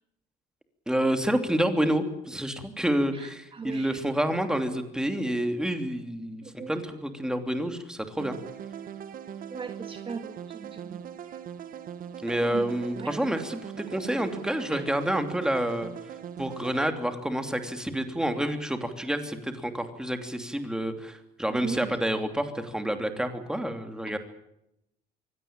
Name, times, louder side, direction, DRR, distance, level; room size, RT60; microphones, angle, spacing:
voice 1, 0.9-8.3 12.2-15.9 16.4-24.2, right 1 dB, 5° right, 7 dB, 3.1 m, -28 dB
voice 2, 3.1-4.0 6.4-6.7 9.5-11.4 12.3-12.6 13.0-13.1 14.7-14.8 21.5-22.0, right 5 dB, 30° right, 7 dB, 1.9 m, -39 dB
sound 1, 8.2-16.9, right 8 dB, 55° right, 1.5 m, -40 dB
24.0 x 17.0 x 8.9 m, 0.81 s
cardioid pair, 110°, 17 cm